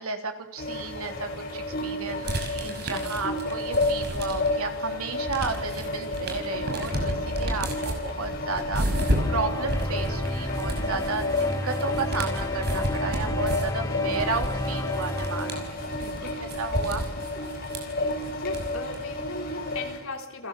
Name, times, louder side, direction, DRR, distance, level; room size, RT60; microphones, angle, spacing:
voice 1, 0.0-11.2 11.6-15.8 16.4-17.1, right 3 dB, 75° right, 6 dB, 3.3 m, -33 dB
sound 1, 0.6-20.0, left 2 dB, 40° left, 7.9 m, -31 dB
sound 2, 2.2-4.7 5.0-19.0, equal, 45° right, 5.7 m, -32 dB
voice 2, 2.6-3.0 10.7-11.0 13.8-14.0 15.9-16.3 18.3-20.5, left 3 dB, 70° left, 3 dB, 4.2 m, -39 dB
sound 3, 9.2-16.2, left 1 dB, 15° left, 0.9 m, -33 dB
30.0 x 21.5 x 7.5 m, 1.0 s
head